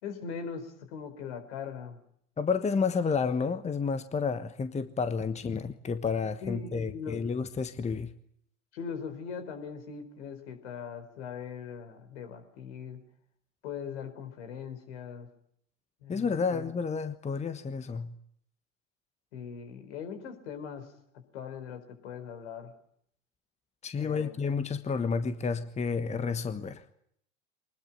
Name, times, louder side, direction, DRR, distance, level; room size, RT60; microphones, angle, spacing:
voice 1, 0.0-2.0 6.4-7.3 8.7-13.0 13.6-15.3 16.0-16.7 19.3-20.9 21.3-22.7 24.0-24.4, left 6 dB, 65° left, 4.4 m, -40 dB
voice 2, 2.4-8.1 16.1-18.1 23.8-26.8, left 5 dB, 20° left, 1.3 m, -30 dB
24.0 x 20.5 x 9.0 m
figure-of-eight pair, 75°, 38 cm